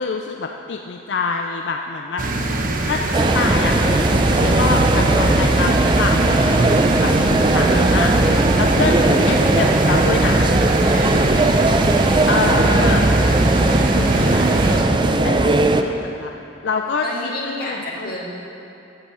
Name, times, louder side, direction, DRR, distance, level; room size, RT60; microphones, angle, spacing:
voice 1, 0.0-2.2 2.8-8.1 8.5-10.5 12.3-16.3 16.6-17.1 17.6-18.1, left 4 dB, 70° left, 3 dB, 0.5 m, -26 dB
sound 1, 2.2-14.8, right 2 dB, 50° right, 1.0 m, -22 dB
sound 2, 3.1-15.8, right 2 dB, 25° right, 0.5 m, -18 dB
voice 2, 10.9-11.4 17.0-18.4, left 1 dB, 50° left, -3 dB, 2.1 m, -31 dB
14.5 x 8.0 x 4.9 m, 2.8 s
head